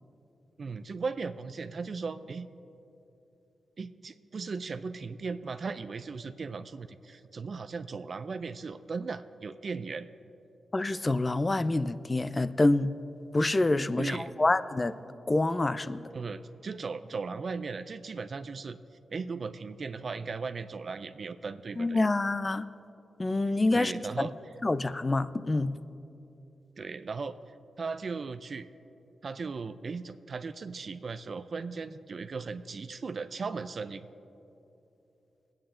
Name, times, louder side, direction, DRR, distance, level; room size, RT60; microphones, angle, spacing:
voice 1, 0.6-2.5 3.8-10.1 14.0-14.3 16.1-18.8 19.1-22.0 23.5-24.5 26.8-27.3 27.8-28.7 29.2-34.1, right 4 dB, 55° right, 10 dB, 0.4 m, -37 dB
voice 2, 10.7-12.9 13.3-14.9 15.3-16.0 21.8-22.7 23.2-23.9 24.2-24.3 24.6-25.7, left 2 dB, 25° left, 15 dB, 0.4 m, -26 dB
21.5 x 8.8 x 3.8 m, 2.9 s
cardioid pair, 85°, 0 cm